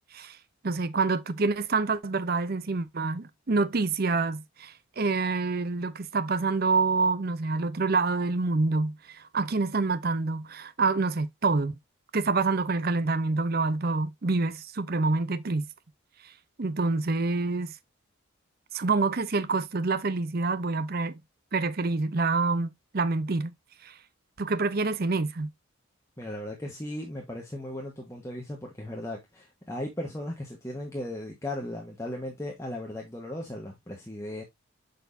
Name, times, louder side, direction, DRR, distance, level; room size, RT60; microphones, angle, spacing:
voice 1, 0.6-11.7 12.1-15.7 16.6-17.7 18.7-21.1 21.5-23.5 23.8-23.9 24.4-25.5, right 3 dB, 45° right, 0.6 m, -27 dB
voice 2, 26.2-34.4, left 1 dB, 15° left, 1.3 m, -37 dB
6.9 x 6.2 x 2.6 m
head